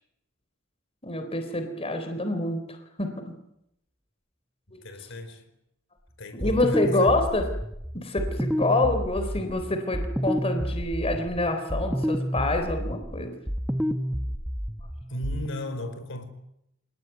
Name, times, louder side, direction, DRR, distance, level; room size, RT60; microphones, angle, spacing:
voice 1, 1.0-3.1 4.7-4.8 6.3-7.5 7.9-13.3, left 2 dB, 30° left, 3.9 m, -27 dB
voice 2, 4.7-5.5 6.2-7.2 15.1-16.3, left 1 dB, 65° left, 4.7 m, -36 dB
sound 1, 6.4-15.5, equal, 5° right, 1.1 m, -30 dB
28.0 x 19.0 x 9.6 m
head